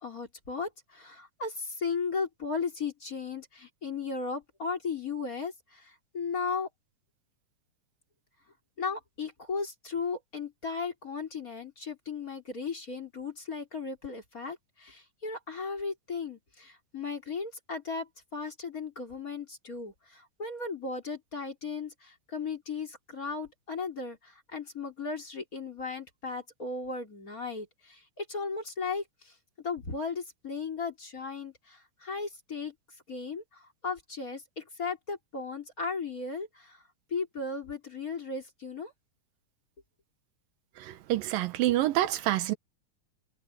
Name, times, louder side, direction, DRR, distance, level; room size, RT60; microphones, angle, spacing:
voice 1, 0.0-6.7 8.8-32.7 33.1-36.8 37.1-38.9, left 4 dB, 25° left, 3.8 m, -36 dB
voice 2, 40.8-42.6, right 15 dB, 85° right, 2.8 m, -27 dB
omnidirectional pair, 3.9 m